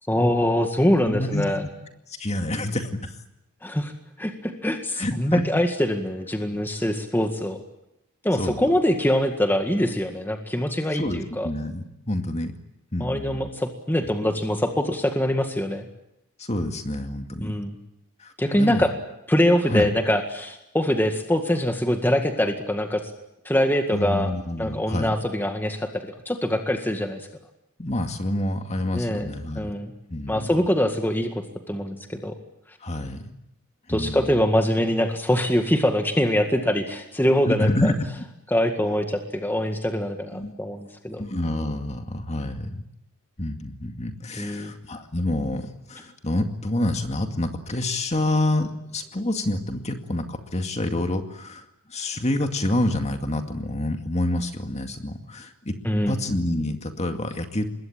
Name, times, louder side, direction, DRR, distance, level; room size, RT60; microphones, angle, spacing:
voice 1, 0.1-1.6 3.6-3.9 4.2-7.6 8.2-11.5 13.0-15.9 17.4-17.8 18.4-18.9 19.3-23.1 23.5-24.3 24.6-27.3 28.9-29.9 30.3-32.4 33.9-37.9 38.5-41.2 44.4-44.7 55.8-56.1, equal, 10° left, 4 dB, 1.9 m, -24 dB
voice 2, 1.1-1.7 2.1-3.2 5.0-5.4 8.4-8.6 10.9-12.5 12.9-13.4 16.4-17.5 18.2-18.9 19.7-19.9 23.9-25.1 27.8-29.7 30.1-30.6 32.8-33.2 33.9-34.4 37.5-37.9 40.3-40.5 41.2-42.8 43.4-55.7 56.1-57.7, left 1 dB, 30° left, 6 dB, 2.2 m, -27 dB
25.5 x 21.5 x 9.0 m, 0.84 s
head